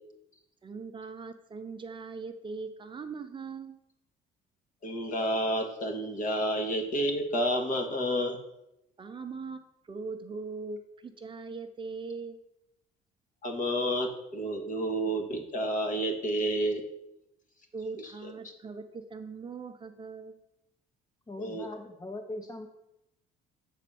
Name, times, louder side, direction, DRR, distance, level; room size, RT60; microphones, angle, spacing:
voice 1, 0.6-3.8 9.0-12.4 17.7-20.4, right 4 dB, 30° right, 8 dB, 0.6 m, -40 dB
voice 2, 4.8-8.4 13.4-16.8 18.2-18.3 21.4-21.7, equal, 50° left, 3 dB, 1.6 m, -30 dB
voice 3, 21.3-22.7, left 2 dB, 20° left, 4 dB, 0.6 m, -40 dB
7.4 x 4.2 x 6.8 m, 0.86 s
cardioid pair, 110°, 17 cm